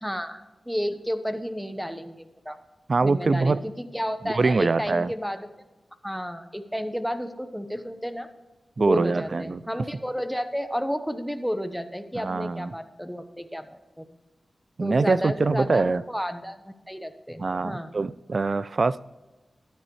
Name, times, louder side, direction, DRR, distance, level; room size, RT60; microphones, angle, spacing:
voice 1, 0.0-2.6 3.0-5.5 6.0-8.3 8.8-14.1 14.8-17.9, equal, ahead, 9 dB, 1.1 m, -31 dB
voice 2, 2.9-3.6 4.2-5.1 8.8-9.6 12.2-12.7 14.8-16.0 17.4-19.0, right 3 dB, 55° right, 18 dB, 0.4 m, -24 dB
13.0 x 10.0 x 3.2 m, 1.2 s
cardioid pair, 60°, 0 cm